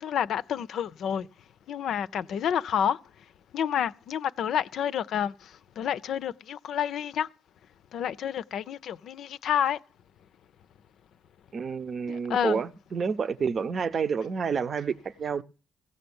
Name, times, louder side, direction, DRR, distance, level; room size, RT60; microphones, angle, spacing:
voice 1, 0.0-1.3 1.7-3.0 3.5-5.3 5.8-7.3 7.9-9.8 12.1-12.6, left 9 dB, 70° left, 0.5 m, -29 dB
voice 2, 11.5-15.4, right 6 dB, 50° right, 0.6 m, -29 dB
16.5 x 5.7 x 7.0 m
cardioid pair, 90°, 0 cm